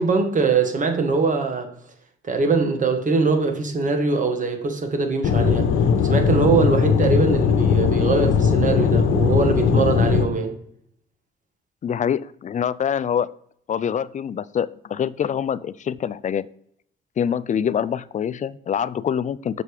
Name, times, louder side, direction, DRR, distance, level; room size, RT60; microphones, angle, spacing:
voice 1, 0.0-1.7 2.2-10.6, right 4 dB, 40° right, 1.6 m, -22 dB
Aircraft / Engine, 5.2-10.2, left 6 dB, 80° left, 0.9 m, -19 dB
voice 2, 11.8-13.3 13.7-16.5 17.2-19.6, left 8 dB, 40° left, 0.4 m, -25 dB
6.7 x 5.3 x 4.8 m
cardioid pair, 90°, 20 cm